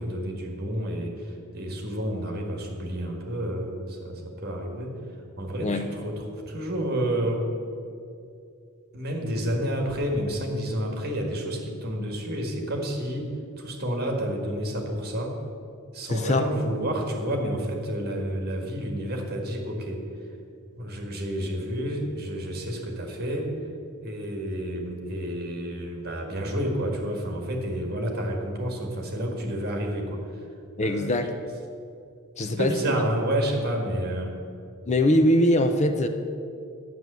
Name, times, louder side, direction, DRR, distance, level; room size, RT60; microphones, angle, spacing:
voice 1, 0.0-4.9 5.4-7.5 8.9-15.4 15.9-20.0 20.7-23.5 24.0-30.5 30.8-31.1 32.5-34.3, right 1 dB, 45° right, 2 dB, 1.7 m, -30 dB
voice 2, 16.1-16.4 30.8-31.3 32.4-32.7 34.9-36.1, left 1 dB, 30° left, 7 dB, 0.5 m, -22 dB
9.4 x 7.7 x 6.7 m, 2.5 s
head